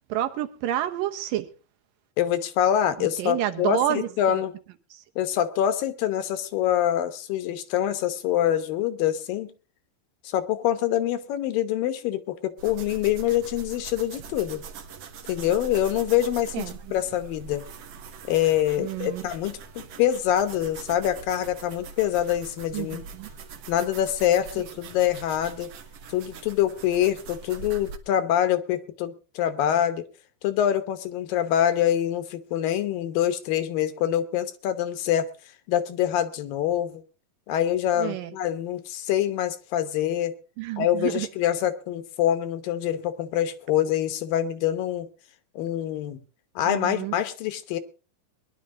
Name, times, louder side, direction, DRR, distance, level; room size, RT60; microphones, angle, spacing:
voice 1, 0.1-1.5 3.0-4.1 4.9-5.0 16.5-16.7 18.8-19.2 22.7-23.3 38.0-38.4 40.6-41.3 46.6-47.1, right 12 dB, 75° right, 2.6 m, -29 dB
voice 2, 2.2-4.5 5.2-9.5 10.2-14.6 15.3-17.7 18.3-23.0 23.7-25.7 26.1-30.1 30.4-35.3 35.7-37.0 37.5-40.3 40.8-45.1 45.6-46.2 46.6-47.8, left 11 dB, 80° left, 2.7 m, -25 dB
sound 1, 12.6-28.0, right 5 dB, 60° right, 2.0 m, -42 dB
21.5 x 11.0 x 3.7 m
omnidirectional pair, 4.1 m